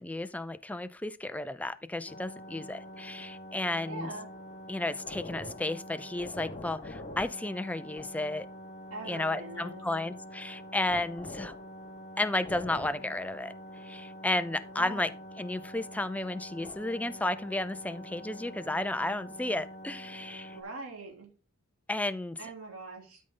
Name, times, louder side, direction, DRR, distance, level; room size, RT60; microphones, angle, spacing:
voice 1, 0.0-4.1 4.7-8.5 9.1-11.5 12.2-13.5 13.8-15.1 15.4-20.5 21.9-22.4, left 2 dB, 5° left, 0.4 m, -33 dB
sound 1, 2.1-20.6, left 1 dB, 35° left, 1.3 m, -45 dB
voice 2, 3.9-4.3 8.9-9.9 14.7-15.1 20.5-21.3 22.4-23.2, right 2 dB, 90° right, 3.2 m, -42 dB
12.5 x 5.1 x 3.8 m
head